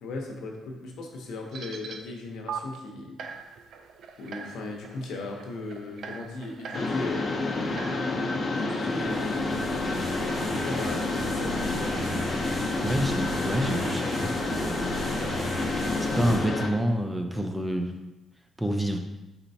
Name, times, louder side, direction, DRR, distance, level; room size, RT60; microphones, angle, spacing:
voice 1, 0.0-3.2 4.2-7.9 8.5-11.9 16.1-16.5, left 3 dB, 80° left, 1 dB, 0.7 m, -37 dB
sound 1, 1.5-2.0 2.5-2.6 3.2-9.4, right 6 dB, 70° right, 0.3 m, -42 dB
Mechanisms, 6.7-16.7, left 2 dB, 45° left, 0.7 m, -29 dB
sound 2, 8.8-16.4, equal, 50° right, 1.3 m, -36 dB
voice 2, 12.8-14.3 16.2-17.9 18.6-19.0, equal, 10° right, 4 dB, 0.5 m, -27 dB
4.4 x 4.1 x 2.7 m, 0.99 s
cardioid pair, 90°, 0 cm